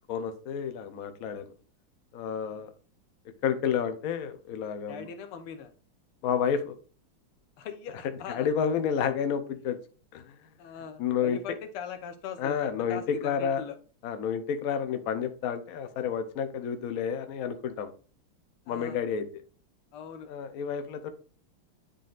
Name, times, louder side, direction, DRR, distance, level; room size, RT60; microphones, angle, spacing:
voice 1, 0.1-1.4 2.1-2.7 3.4-5.0 6.2-6.8 8.3-9.8 10.1-10.3 11.0-11.4 12.4-13.6 14.0-17.9 18.7-19.3 20.3-21.1, left 7 dB, 65° left, 8 dB, 0.9 m, -30 dB
voice 2, 4.9-5.7 7.6-8.5 10.6-13.8 18.7-19.0 19.9-20.3, left 6 dB, 85° left, 7 dB, 1.7 m, -41 dB
10.0 x 3.9 x 2.5 m, 0.39 s
omnidirectional pair, 2.3 m